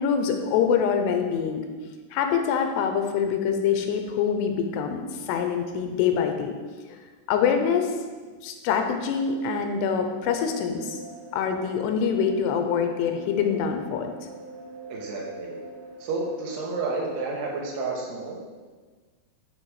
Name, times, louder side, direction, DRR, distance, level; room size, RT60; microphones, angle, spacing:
voice 1, 0.0-1.7 2.1-6.6 6.9-7.0 7.3-7.9 8.4-11.0 11.3-14.1, left 7 dB, 85° left, 5 dB, 2.7 m, -25 dB
sound 1, 8.9-17.8, right 3 dB, 50° right, 3.2 m, -43 dB
voice 2, 14.9-15.5 16.0-18.4, right 3 dB, 75° right, -2 dB, 3.3 m, -30 dB
10.5 x 5.2 x 4.8 m, 1.4 s
omnidirectional pair, 5.0 m